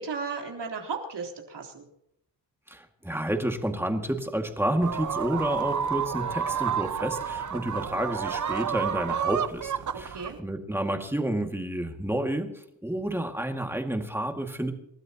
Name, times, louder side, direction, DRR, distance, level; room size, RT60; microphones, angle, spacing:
voice 1, 0.0-1.8 10.1-10.4, right 4 dB, 65° right, 1 dB, 3.8 m, -35 dB
voice 2, 2.7-14.7, right 1 dB, 5° right, 3 dB, 2.2 m, -30 dB
sound 1, 4.8-10.4, right 8 dB, 40° right, 0.9 m, -30 dB
29.0 x 13.0 x 3.0 m, 0.76 s
cardioid pair, 85°, 44 cm